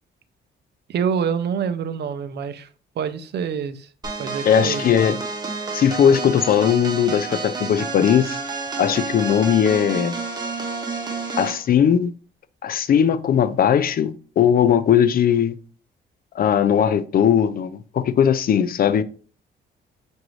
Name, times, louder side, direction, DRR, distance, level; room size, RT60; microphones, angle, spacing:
voice 1, 0.9-2.7 3.0-3.9 4.2-4.9, right 7 dB, 60° right, 0.5 m, -26 dB
sound 1, 4.0-11.6, right 4 dB, 20° right, 1.0 m, -30 dB
voice 2, 4.4-5.2 5.7-8.4 8.8-10.1 11.4-12.1 12.6-15.6 16.3-19.0, left 8 dB, 50° left, 0.4 m, -18 dB
5.9 x 2.6 x 3.1 m
cardioid pair, 90°, 20 cm